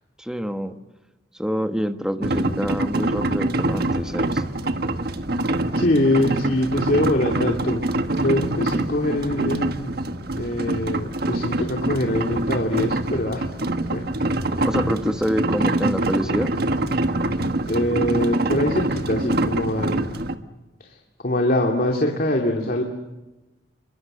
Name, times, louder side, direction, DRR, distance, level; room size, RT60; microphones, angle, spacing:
voice 1, 0.2-0.8 1.3-4.4 14.6-16.6, equal, 5° right, 7 dB, 1.3 m, -26 dB
sound 1, 2.2-20.4, right 2 dB, 60° right, 1.4 m, -25 dB
voice 2, 5.7-7.9 8.2-10.0 10.3-13.5 13.9-14.0 17.7-20.2 20.8-22.8, left 1 dB, 55° left, 1 dB, 2.7 m, -23 dB
29.0 x 23.5 x 6.8 m, 1.1 s
head